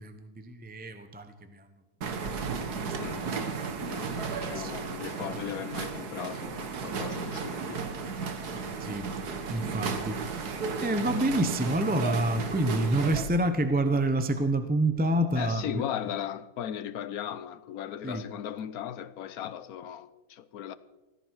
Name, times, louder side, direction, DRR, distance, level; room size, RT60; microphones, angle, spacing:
voice 1, 0.0-1.7 2.5-3.6 4.1-4.2 4.5-4.7 8.8-9.1 9.5-10.5 10.8-15.8 18.0-18.3, right 1 dB, 10° right, 0.8 m, -28 dB
sound 1, 2.0-13.2, right 5 dB, 85° right, 1.9 m, -34 dB
voice 2, 3.0-3.3 3.9-8.5 15.3-20.8, left 10 dB, 75° left, 1.2 m, -37 dB
18.0 x 14.5 x 4.8 m
omnidirectional pair, 1.6 m